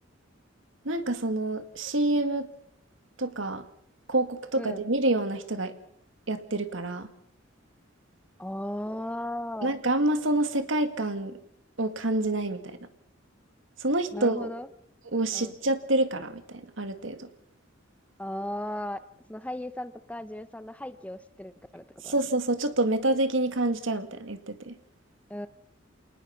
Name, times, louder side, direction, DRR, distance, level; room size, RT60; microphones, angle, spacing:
voice 1, 0.9-2.5 3.2-3.6 4.1-5.7 6.3-7.1 9.6-11.4 11.8-12.8 13.8-14.5 15.1-17.3 22.0-24.7, right 2 dB, 75° right, 10 dB, 2.1 m, -27 dB
voice 2, 8.4-9.8 14.1-14.7 15.3-15.5 18.2-19.0 19.3-22.1 25.3-25.5, left 1 dB, 5° left, 13 dB, 0.8 m, -36 dB
28.5 x 19.0 x 5.9 m, 0.71 s
head